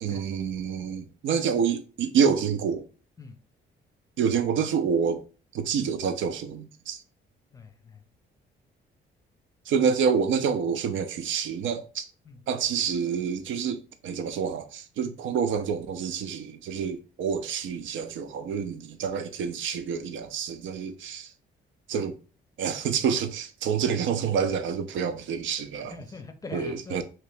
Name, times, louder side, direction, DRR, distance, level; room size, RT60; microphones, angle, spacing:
voice 1, 0.0-2.9 4.2-5.2 5.5-7.0 9.7-12.1 12.5-21.3 21.9-22.2 22.6-25.9 26.5-27.0, right 6 dB, 75° right, 0.5 m, -27 dB
voice 2, 7.5-8.0 12.2-12.4 25.9-27.0, left 3 dB, 15° left, 0.6 m, -42 dB
2.9 x 2.9 x 3.3 m
cardioid pair, 90°, 20 cm